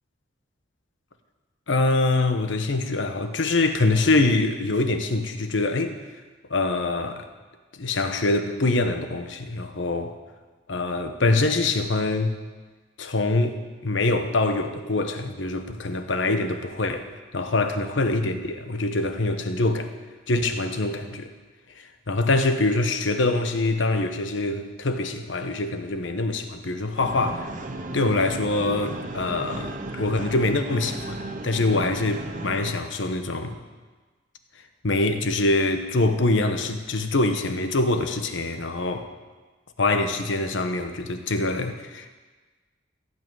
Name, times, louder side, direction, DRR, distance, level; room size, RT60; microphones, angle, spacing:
voice 1, 1.7-5.9 6.5-7.2 7.8-10.1 10.7-12.4 13.0-17.1 17.3-19.9 20.3-21.3 22.1-27.5 27.9-33.5 34.8-39.1 39.8-42.1, left 2 dB, 80° left, 7 dB, 1.1 m, -24 dB
sound 1, 27.0-32.7, right 2 dB, 40° right, 0.9 m, -35 dB
15.5 x 5.7 x 9.0 m, 1.3 s
head